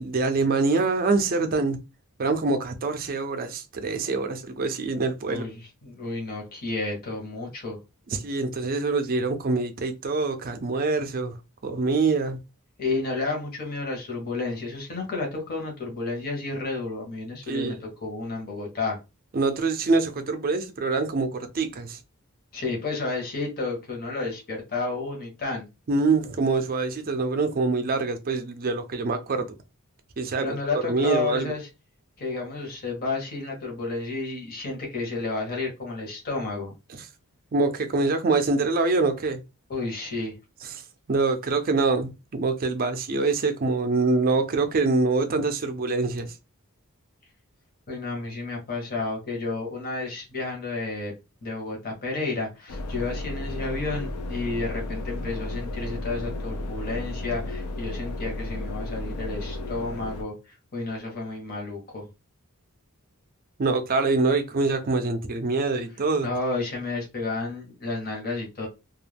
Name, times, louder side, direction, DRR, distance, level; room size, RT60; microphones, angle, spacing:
voice 1, 0.0-1.8 2.2-5.4 8.1-11.4 11.6-12.4 17.5-17.8 19.3-22.0 25.9-29.6 30.2-30.6 30.8-31.5 37.5-39.4 40.6-40.8 41.1-46.3 63.6-66.3, right 3 dB, 40° right, 0.4 m, -25 dB
voice 2, 5.3-7.8 12.8-19.0 22.5-25.7 30.4-31.7 32.2-36.7 39.7-40.3 47.9-51.1 51.4-62.1 66.2-68.7, left 3 dB, 45° left, 0.9 m, -31 dB
sound 1, 52.7-60.2, left 2 dB, 85° left, 0.5 m, -33 dB
2.3 x 2.1 x 3.2 m
head